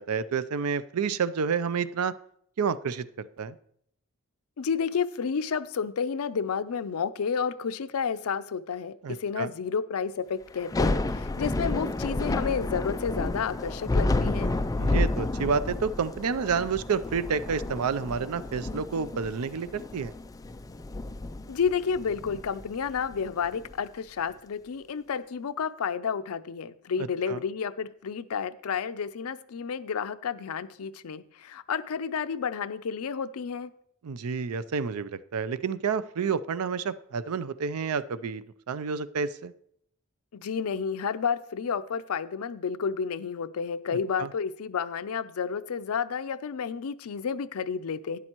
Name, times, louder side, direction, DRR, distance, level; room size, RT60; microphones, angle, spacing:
voice 1, 0.0-2.1 2.6-3.6 9.0-9.5 14.8-20.1 27.3-27.4 34.0-39.5 44.2-44.3, right 6 dB, 90° right, 16 dB, 0.5 m, -29 dB
voice 2, 4.6-14.6 21.5-33.7 40.3-48.2, left 6 dB, 80° left, 14 dB, 0.5 m, -31 dB
Thunder / Rain, 10.6-23.7, left 2 dB, 15° left, 0.3 m, -30 dB
12.0 x 9.7 x 3.0 m, 0.69 s
head